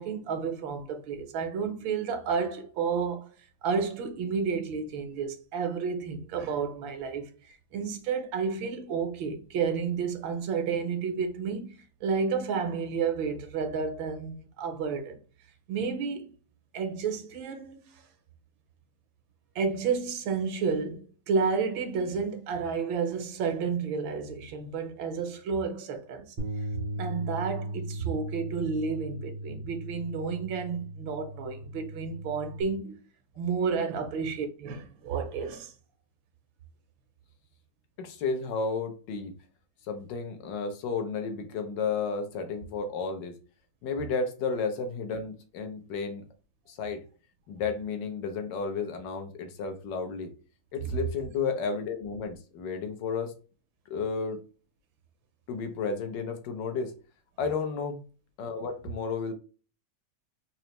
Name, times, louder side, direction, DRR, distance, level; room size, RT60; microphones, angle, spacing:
voice 1, 0.0-3.3 3.6-11.8 12.0-15.2 15.7-16.3 16.7-18.0 19.5-26.3 27.0-32.9 33.4-35.7, right 5 dB, 80° right, 1.6 m, -31 dB
Bass guitar, 26.4-32.6, right 1 dB, 65° right, 0.5 m, -37 dB
voice 2, 38.0-39.3 39.9-43.4 43.8-46.2 46.7-47.0 47.5-50.3 50.7-53.3 53.9-54.4 55.5-56.9 57.4-58.0 58.4-59.3, left 5 dB, 70° left, 1.3 m, -32 dB
4.1 x 2.8 x 3.1 m
omnidirectional pair, 2.1 m